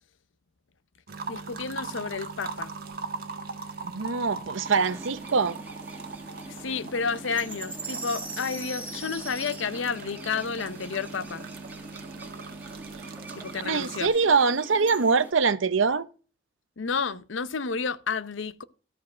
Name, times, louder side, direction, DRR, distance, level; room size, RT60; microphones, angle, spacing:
sound 1, 1.1-14.1, right 4 dB, 50° right, 1.5 m, -40 dB
voice 1, 1.3-2.7 6.5-11.4 13.4-14.1 16.8-18.6, left 5 dB, 75° left, 0.7 m, -31 dB
voice 2, 3.8-5.6 13.6-16.1, right 5 dB, 80° right, 0.7 m, -23 dB
sound 2, 4.6-15.3, right 2 dB, 10° right, 1.6 m, -42 dB
13.5 x 4.6 x 6.2 m
head